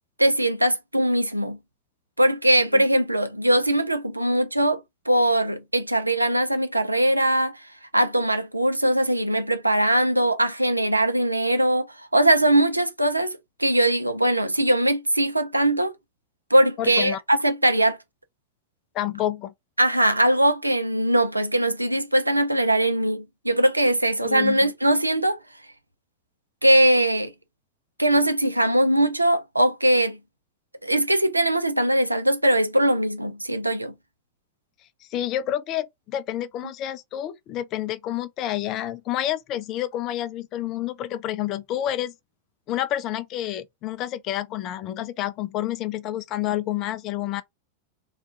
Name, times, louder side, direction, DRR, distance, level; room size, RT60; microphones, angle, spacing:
voice 1, 0.2-1.6 2.2-4.8 5.1-15.9 16.5-18.0 19.8-25.4 26.6-27.3 28.0-30.2 30.8-33.9, right 1 dB, 85° right, 0.3 m, -21 dB
voice 2, 16.8-17.2 18.9-19.5 24.2-24.6 35.1-42.1 42.7-47.4, left 12 dB, 35° left, 0.3 m, -29 dB
2.3 x 2.1 x 2.6 m
figure-of-eight pair, 90°, 0 cm